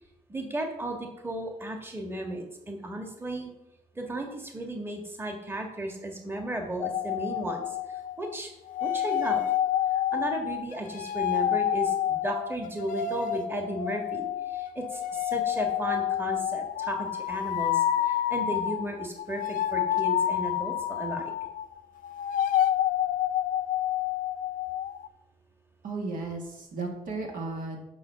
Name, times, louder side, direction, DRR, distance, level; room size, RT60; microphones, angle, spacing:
voice 1, 0.3-3.5 3.9-8.5 8.8-9.4 9.9-21.3, right 1 dB, 15° right, 2 dB, 1.5 m, -35 dB
sound 1, 6.8-8.4 8.7-21.7 22.0-25.1, left 11 dB, 75° left, 0.5 m, -29 dB
voice 2, 25.8-27.8, right 3 dB, 70° right, 1 dB, 2.1 m, -34 dB
7.1 x 5.3 x 6.9 m, 0.88 s
cardioid pair, 105°, 14 cm